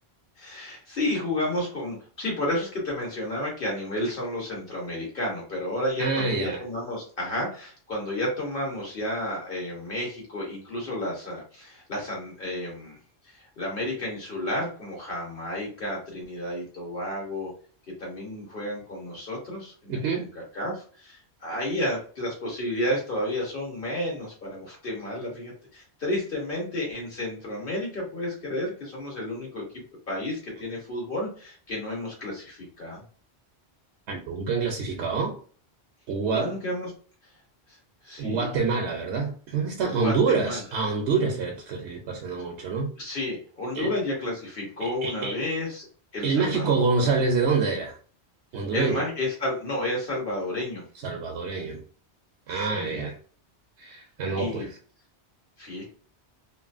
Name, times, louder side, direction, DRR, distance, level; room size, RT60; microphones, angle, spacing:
voice 1, 0.4-13.0 13.3-17.5 17.9-33.0 36.2-36.9 37.7-37.8 38.0-38.4 39.9-40.6 43.0-45.9 46.1-47.1 48.7-50.8 52.5-53.1 54.4-54.7 55.6-55.9, left 1 dB, 55° left, 1.3 m, -31 dB
voice 2, 6.0-6.6 19.9-20.3 34.1-35.4 36.1-36.5 38.2-42.9 43.7-43.9 44.8-45.4 46.2-48.0 48.5-49.0 51.0-51.8 52.5-53.2 53.8-54.7, right 4 dB, 80° right, 0.9 m, -26 dB
3.0 x 2.5 x 2.5 m
omnidirectional pair, 1.1 m